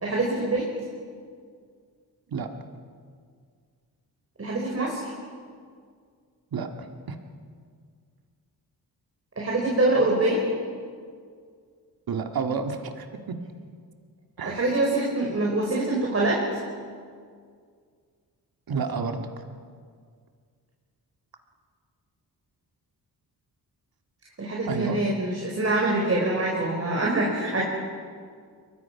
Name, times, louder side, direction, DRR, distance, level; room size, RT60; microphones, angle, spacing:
voice 1, 0.0-0.6 4.4-5.1 9.4-10.4 14.4-16.4 24.4-27.6, right 2 dB, 40° right, -2 dB, 4.9 m, -24 dB
voice 2, 6.5-7.2 12.1-13.4 14.4-14.6 18.7-19.4 24.7-25.0, right 5 dB, 70° right, 5 dB, 2.0 m, -30 dB
29.0 x 22.5 x 5.9 m, 2.1 s
cardioid pair, 90°, 37 cm